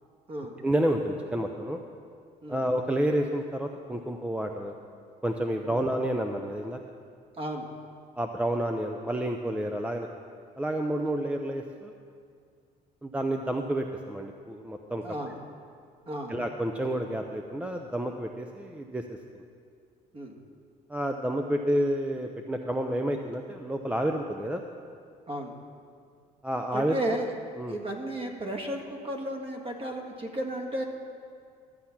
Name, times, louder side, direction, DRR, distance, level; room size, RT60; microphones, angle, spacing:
voice 1, 0.6-1.8 2.5-4.8 5.2-6.8 8.2-10.1 10.6-11.9 13.0-15.0 16.3-19.0 20.9-24.6 26.4-27.0 27.6-27.8, right 1 dB, 5° right, 4 dB, 0.6 m, -29 dB
voice 2, 7.4-7.7 15.0-15.4 16.1-16.4 20.1-20.4 25.3-25.5 26.7-27.3 27.7-30.8, right 1 dB, 35° right, 2 dB, 1.7 m, -34 dB
13.5 x 8.3 x 5.9 m, 2.2 s
cardioid pair, 110°, 17 cm